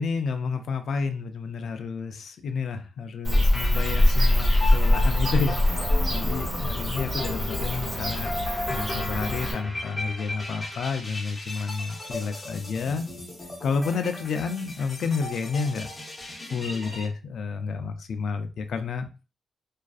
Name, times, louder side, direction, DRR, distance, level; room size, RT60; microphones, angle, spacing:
voice 1, 0.0-8.4 8.7-13.1 13.6-15.9 16.4-19.1, left 5 dB, 70° left, 0.3 m, -30 dB
Bird / Cricket, 3.2-9.5, left 1 dB, 45° right, 1.1 m, -23 dB
sound 1, 3.3-17.1, left 2 dB, 20° left, 0.7 m, -36 dB
2.4 x 2.3 x 2.4 m
wide cardioid pair, 130°, 0 cm